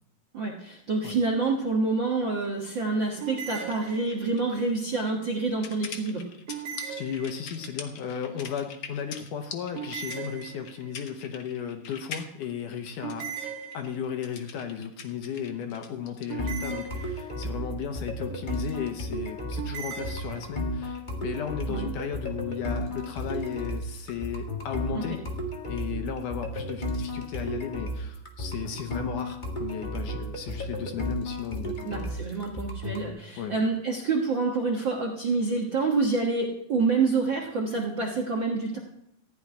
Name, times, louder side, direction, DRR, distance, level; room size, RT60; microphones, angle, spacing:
voice 1, 0.3-6.2 21.7-21.9 24.9-25.0 31.8-38.8, right 3 dB, 50° right, 1 dB, 1.4 m, -27 dB
sound 1, 3.2-4.5 6.5-7.8 9.7-11.0 13.0-14.3 16.3-17.6 19.6-20.5, right 7 dB, 70° right, 3.2 m, -38 dB
sound 2, 3.6-16.3, left 6 dB, 85° left, 1.1 m, -43 dB
voice 2, 6.9-13.3 13.7-25.2 25.7-32.2 33.4-33.5, left 8 dB, 70° left, 6 dB, 2.3 m, -35 dB
sound 3, 16.4-33.1, equal, 45° left, 0.6 m, -33 dB
15.0 x 5.9 x 9.7 m, 0.81 s
omnidirectional pair, 4.2 m